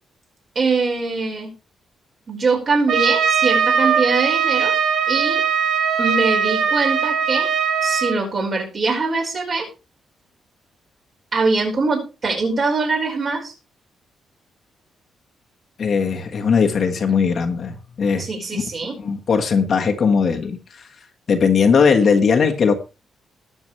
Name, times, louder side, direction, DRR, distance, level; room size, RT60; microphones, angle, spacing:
voice 1, 0.6-1.5 2.3-4.7 5.1-5.4 6.0-7.5 7.8-9.7 11.3-13.5 18.2-19.0, right 3 dB, 40° right, 0 dB, 5.2 m, -22 dB
Trumpet, 2.9-8.2, right 7 dB, 65° right, 1.9 m, -20 dB
voice 2, 15.8-18.2 18.5-18.6 19.0-20.9 21.3-22.7, left 5 dB, 45° left, 3 dB, 1.5 m, -18 dB
20.0 x 7.2 x 3.3 m, 0.30 s
cardioid pair, 145°, 0 cm